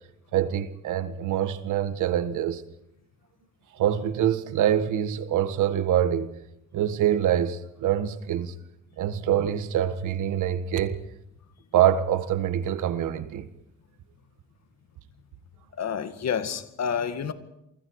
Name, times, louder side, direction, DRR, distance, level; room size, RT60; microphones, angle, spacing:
voice 1, 0.3-2.6 3.7-6.3 6.7-8.5 9.0-11.0 11.7-13.5, right 10 dB, 80° right, 1.6 m, -25 dB
voice 2, 15.8-17.3, left 7 dB, 60° left, 2.0 m, -29 dB
29.0 x 24.0 x 4.8 m
cardioid pair, 90°, 30 cm